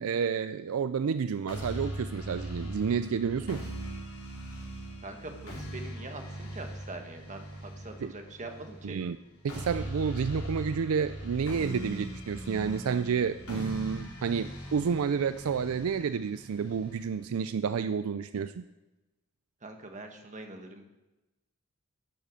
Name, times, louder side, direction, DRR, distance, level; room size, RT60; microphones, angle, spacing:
voice 1, 0.0-3.7 8.0-8.1 8.8-9.2 9.4-18.6, right 6 dB, 70° right, 12 dB, 0.4 m, -30 dB
sound 1, 1.5-17.5, right 1 dB, 75° left, 3.5 m, -40 dB
voice 2, 5.0-9.0 19.6-20.8, right 2 dB, 35° right, 4 dB, 1.4 m, -43 dB
12.0 x 7.5 x 6.3 m, 1.1 s
head